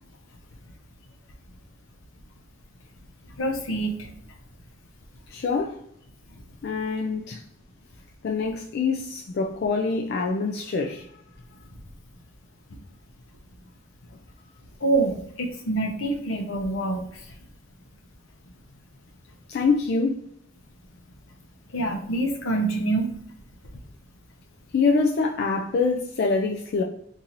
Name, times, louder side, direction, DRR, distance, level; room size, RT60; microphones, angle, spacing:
voice 1, 3.4-3.9 14.8-17.1 21.7-23.1, right 2 dB, 70° left, 0.7 m, -26 dB
voice 2, 5.3-5.8 6.6-7.4 8.2-11.1 19.5-20.2 24.7-26.8, left 4 dB, 50° left, 0.3 m, -25 dB
3.9 x 2.6 x 2.9 m
head